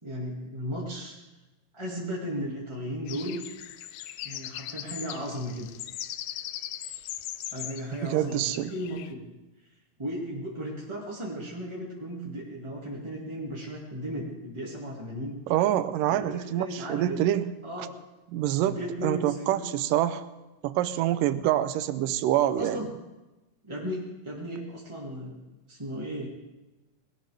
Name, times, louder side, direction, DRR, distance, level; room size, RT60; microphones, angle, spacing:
voice 1, 0.0-1.2 1.7-3.4 4.2-5.7 7.5-9.2 10.0-15.3 16.1-17.2 17.6-17.9 18.7-19.6 22.6-22.9 23.6-26.3, equal, 15° right, -4 dB, 1.2 m, -35 dB
sound 1, 3.1-9.1, left 12 dB, 75° left, 2.0 m, -39 dB
voice 2, 7.9-8.7 15.5-17.5 17.8-17.9 18.3-20.2 20.6-22.8, right 12 dB, 80° right, 13 dB, 2.2 m, -26 dB
21.0 x 17.5 x 3.4 m, 1.1 s
omnidirectional pair, 4.1 m